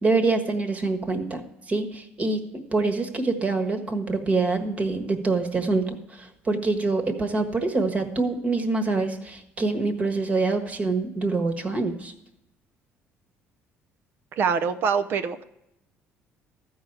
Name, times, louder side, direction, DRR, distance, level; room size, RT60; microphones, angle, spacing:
voice 1, 0.0-12.1, right 3 dB, 30° right, 7 dB, 1.4 m, -25 dB
voice 2, 14.4-15.4, right 6 dB, 55° right, 10 dB, 0.6 m, -24 dB
14.0 x 4.7 x 8.7 m, 0.87 s
cardioid pair, 135°, 4 cm